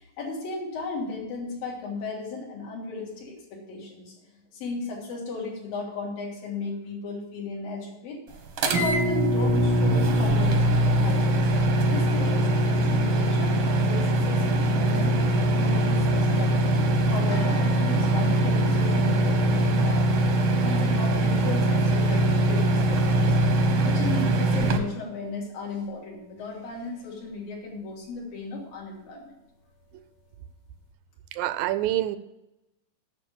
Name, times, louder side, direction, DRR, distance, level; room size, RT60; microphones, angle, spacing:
voice 1, 0.0-4.1 4.5-8.2 8.6-11.4 11.9-15.2 15.6-16.8 17.1-23.3 23.8-29.3, left 3 dB, 80° left, -2 dB, 4.5 m, -35 dB
sound 1, 8.6-24.8, right 1 dB, 65° right, 1.3 m, -22 dB
sound 2, 17.3-26.1 26.4-27.3 28.1-28.2 28.6-28.7, left 1 dB, 60° left, 2.3 m, -48 dB
voice 2, 31.3-32.2, right 14 dB, 80° right, 13 dB, 2.2 m, -27 dB
9.2 x 6.9 x 7.0 m, 0.93 s
omnidirectional pair, 4.0 m